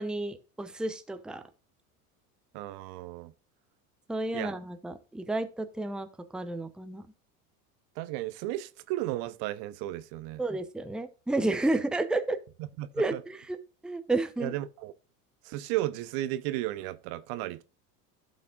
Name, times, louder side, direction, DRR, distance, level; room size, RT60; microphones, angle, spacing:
voice 1, 0.0-1.4 4.1-7.1 10.4-12.4 12.9-13.6 13.8-14.5, right 2 dB, ahead, 0.8 m, -31 dB
voice 2, 2.5-3.3 4.3-4.5 8.0-10.4 12.8-13.2 14.4-14.9 15.4-17.6, right 15 dB, 50° right, 0.9 m, -34 dB
15.0 x 5.5 x 2.5 m
hypercardioid pair, 80°, 46 cm